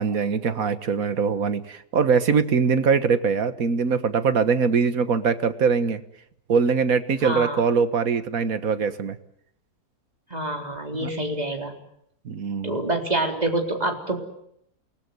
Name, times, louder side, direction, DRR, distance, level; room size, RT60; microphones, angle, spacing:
voice 1, 0.0-6.0 6.5-9.2 11.0-11.1 12.3-12.8, right 5 dB, 65° right, 11 dB, 1.9 m, -22 dB
voice 2, 7.2-7.6 10.3-11.7 12.6-14.2, right 1 dB, 25° right, 3 dB, 4.0 m, -26 dB
28.5 x 20.0 x 9.6 m, 0.75 s
omnidirectional pair, 1.6 m